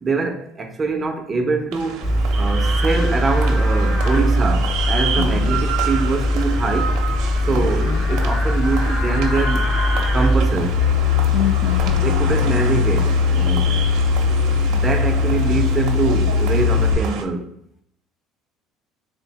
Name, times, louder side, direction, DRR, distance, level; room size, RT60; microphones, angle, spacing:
voice 1, 0.0-7.0 7.4-9.7 10.1-10.8 12.0-13.9 14.7-17.5, right 4 dB, 20° right, 0.6 m, -24 dB
sound 1, 1.7-17.2, right 6 dB, 70° right, 0.6 m, -30 dB
Livestock farm animals working animals, 2.0-16.9, left 3 dB, 20° left, 0.7 m, -20 dB
voice 2, 5.2-5.5 7.5-8.0 11.3-12.4, left 8 dB, 65° left, 0.5 m, -27 dB
3.5 x 2.5 x 4.0 m
cardioid pair, 135°, 0 cm